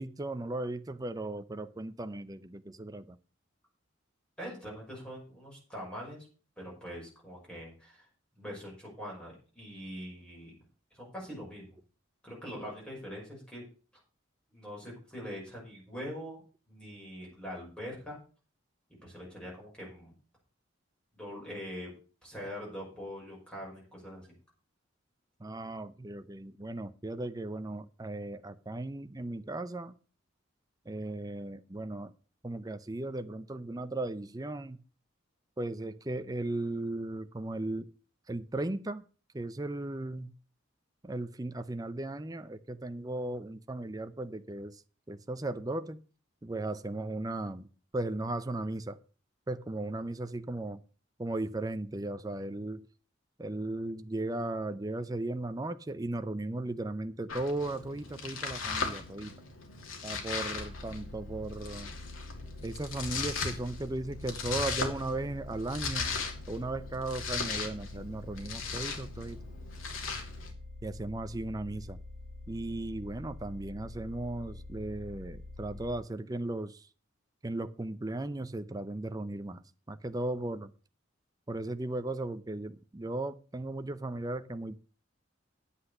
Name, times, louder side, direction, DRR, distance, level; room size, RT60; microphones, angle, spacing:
voice 1, 0.0-3.2 25.4-29.9 30.9-32.1 32.4-34.8 35.6-37.9 38.3-39.0 39.3-40.3 41.0-44.8 45.1-46.0 46.4-47.7 47.9-49.0 49.5-50.8 51.2-52.9 53.4-59.3 60.0-61.9 62.6-66.1 66.5-69.4 70.8-72.0 72.5-76.9 77.4-80.7 81.5-84.8, right 2 dB, 20° right, 0.6 m, -36 dB
voice 2, 4.4-6.3 6.6-8.1 8.4-10.5 10.9-11.8 12.2-13.6 14.5-18.2 19.0-20.1 21.1-21.9 22.2-24.3, equal, 5° left, 5.8 m, -43 dB
Domestic sounds home sounds, 57.3-70.5, left 4 dB, 85° left, 2.7 m, -38 dB
sound 1, 60.5-76.0, left 2 dB, 60° left, 5.8 m, -46 dB
9.9 x 8.4 x 6.6 m
head